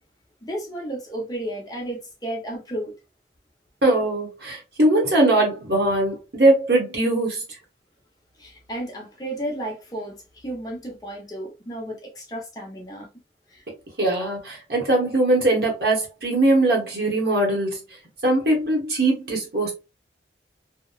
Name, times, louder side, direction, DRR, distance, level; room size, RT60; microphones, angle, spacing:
voice 1, 0.4-2.9 8.4-13.1 13.5-13.6, right 1 dB, 20° left, 0.7 m, -33 dB
voice 2, 3.8-7.4 14.0-17.8 18.2-19.7, right 2 dB, 65° right, 1.0 m, -21 dB
2.8 x 2.1 x 2.3 m
head